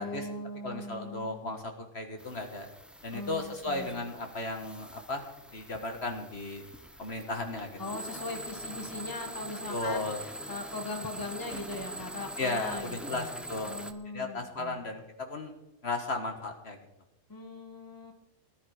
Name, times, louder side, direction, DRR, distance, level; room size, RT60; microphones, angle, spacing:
voice 1, 0.0-1.6 3.1-4.0 7.8-13.3 13.7-14.8 17.3-18.1, left 2 dB, 15° left, 4 dB, 1.5 m, -40 dB
voice 2, 0.6-2.7 3.0-5.3 5.5-6.6 7.0-8.0 9.7-10.2 12.4-13.7 14.0-15.5 15.8-16.8, left 2 dB, 55° left, 4 dB, 1.7 m, -35 dB
sound 1, 2.2-13.9, right 1 dB, ahead, 0.6 m, -43 dB
18.0 x 10.5 x 5.0 m, 0.91 s
omnidirectional pair, 1.4 m